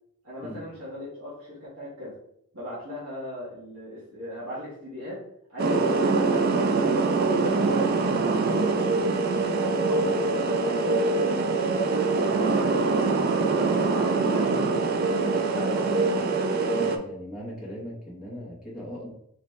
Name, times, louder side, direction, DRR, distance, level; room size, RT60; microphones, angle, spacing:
voice 1, 0.2-2.2 2.5-5.2 5.5-7.0 7.3-11.4 12.1-16.2, left 1 dB, 70° right, -7 dB, 1.4 m, -38 dB
sound 1, 5.6-17.0, right 3 dB, 45° right, 0.4 m, -24 dB
voice 2, 16.8-19.1, equal, 5° right, -6 dB, 0.9 m, -39 dB
4.1 x 2.8 x 3.2 m, 0.72 s
head